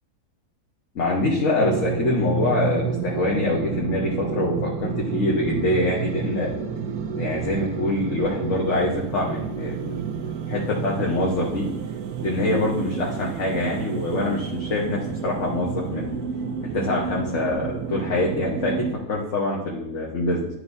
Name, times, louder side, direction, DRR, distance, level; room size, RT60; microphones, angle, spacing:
voice 1, 0.9-6.5 7.1-10.2 10.5-11.7 12.2-16.1 16.6-20.5, left 2 dB, 50° left, -4 dB, 1.4 m, -25 dB
sound 1, 1.6-18.9, right 6 dB, 75° right, 1.1 m, -30 dB
11.5 x 4.7 x 2.6 m, 0.84 s
omnidirectional pair, 1.6 m